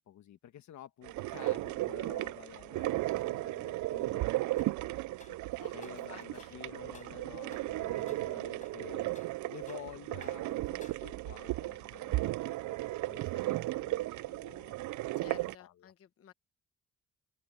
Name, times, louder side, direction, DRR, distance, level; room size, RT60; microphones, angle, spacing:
voice 1, 0.0-9.1 9.5-12.8 13.1-15.9, left 11 dB, 70° left, 1.4 m, -52 dB
sound 1, 1.0-15.5, right 18 dB, 75° right, 0.5 m, -35 dB
sound 2, 4.6-4.8 5.2-6.1 6.4-6.6 6.9-7.2 7.5-7.8 8.1-8.3 8.6-9.9 10.2-10.4 10.8-11.4, left 3 dB, 25° left, 5.0 m, -59 dB
voice 2, 5.6-6.6 15.2-16.3, left 10 dB, 50° left, 1.1 m, -54 dB
open air
cardioid pair, 90°, 30 cm